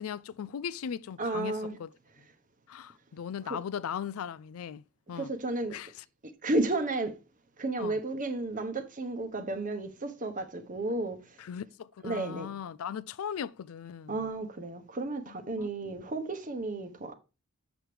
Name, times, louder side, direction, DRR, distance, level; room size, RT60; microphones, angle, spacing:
voice 1, 0.0-1.9 2.7-4.8 5.1-5.3 5.7-6.0 7.8-8.0 11.4-14.3 15.3-16.0, left 8 dB, 75° left, 0.4 m, -38 dB
voice 2, 1.2-1.8 5.1-5.8 6.4-7.2 7.6-11.2 12.0-12.5 14.1-17.1, right 2 dB, 40° right, 1.0 m, -32 dB
7.9 x 6.1 x 3.3 m
head